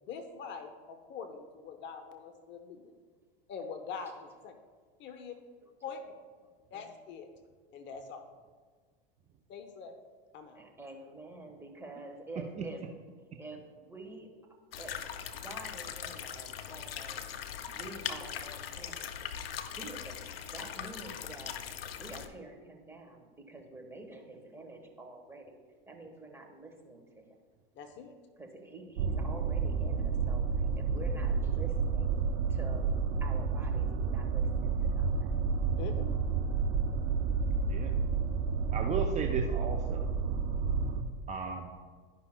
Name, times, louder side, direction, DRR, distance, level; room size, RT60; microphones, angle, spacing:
voice 1, 0.0-2.9 3.5-4.5 5.0-5.4 5.8-6.0 6.7-7.3 7.7-8.2 9.5-9.9 10.3-10.6 27.8-28.1 35.8-36.1, left 6 dB, 40° left, 6 dB, 0.8 m, -43 dB
voice 2, 5.6-6.8 10.5-12.8 13.4-14.3 14.8-15.0 15.3-17.3 17.6-19.1 19.7-21.5 22.0-25.6 25.9-27.2 28.4-32.2 32.5-32.9 33.2-35.3, right 2 dB, 10° right, 2 dB, 1.3 m, -48 dB
sound 1, 14.7-22.3, left 8 dB, 85° left, 0.5 m, -40 dB
sound 2, 29.0-41.0, right 5 dB, 75° right, 0.7 m, -30 dB
voice 3, 38.7-40.0 41.3-41.8, right 6 dB, 25° right, 3 dB, 0.5 m, -35 dB
11.5 x 5.6 x 2.2 m, 1.5 s
hypercardioid pair, 95°, 29 cm